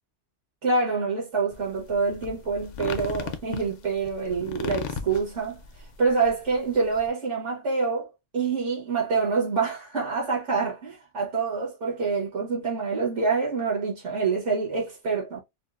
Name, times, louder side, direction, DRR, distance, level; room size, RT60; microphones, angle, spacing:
voice 1, 0.6-5.6 6.0-15.4, right 4 dB, 80° right, 1.7 m, -26 dB
sound 1, 1.5-7.1, left 6 dB, 55° left, 0.5 m, -37 dB
4.5 x 2.0 x 2.4 m
omnidirectional pair, 1.2 m